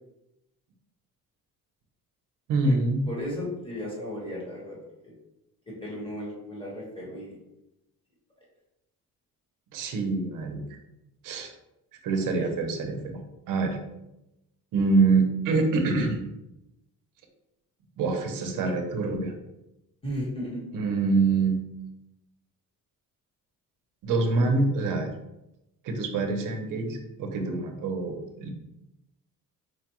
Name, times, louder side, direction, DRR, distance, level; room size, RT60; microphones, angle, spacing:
voice 1, 2.5-3.0 9.7-10.6 11.2-11.5 12.0-13.2 13.5-13.8 14.7-16.2 18.0-19.3 20.7-21.6 24.0-25.1 25.8-28.5, right 3 dB, 70° right, 4 dB, 0.8 m, -25 dB
voice 2, 3.1-4.8 5.7-7.4 12.3-12.5 20.0-20.6, equal, 15° left, -4 dB, 1.1 m, -35 dB
4.6 x 2.2 x 2.9 m, 0.90 s
cardioid pair, 140°, 34 cm